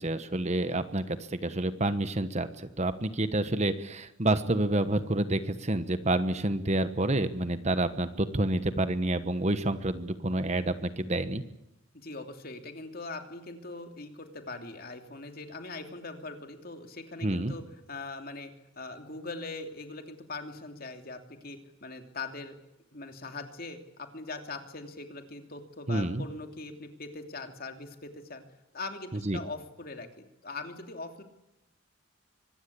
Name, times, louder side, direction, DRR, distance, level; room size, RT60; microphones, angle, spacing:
voice 1, 0.0-11.4 17.2-17.5 25.9-26.2 29.1-29.4, right 1 dB, 35° right, 11 dB, 1.2 m, -28 dB
voice 2, 11.9-22.6 22.9-28.4 28.7-30.1 30.4-31.2, left 3 dB, 50° left, 5 dB, 2.9 m, -41 dB
24.5 x 19.5 x 8.7 m, 0.90 s
head